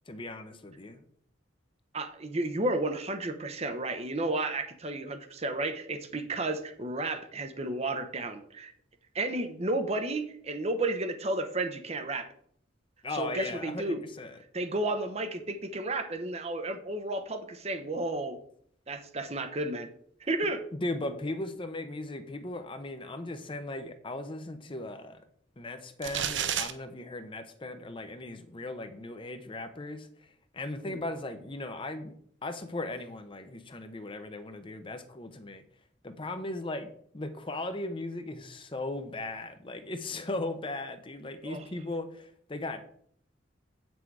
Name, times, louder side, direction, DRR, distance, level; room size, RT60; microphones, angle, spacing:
voice 1, 0.1-1.0 13.0-14.4 20.7-25.2 25.6-30.3 30.5-32.1 32.4-35.6 36.0-36.9 37.1-42.9, left 2 dB, 25° left, 8 dB, 0.7 m, -37 dB
voice 2, 1.9-8.7 9.1-12.3 13.1-14.0 14.5-18.4 18.9-19.9 20.2-20.6 30.8-31.0 41.4-41.7, right 2 dB, 35° right, 8 dB, 0.8 m, -32 dB
sound 1, 26.0-26.7, right 9 dB, 70° right, 0.8 m, -30 dB
8.3 x 6.2 x 4.7 m, 0.63 s
head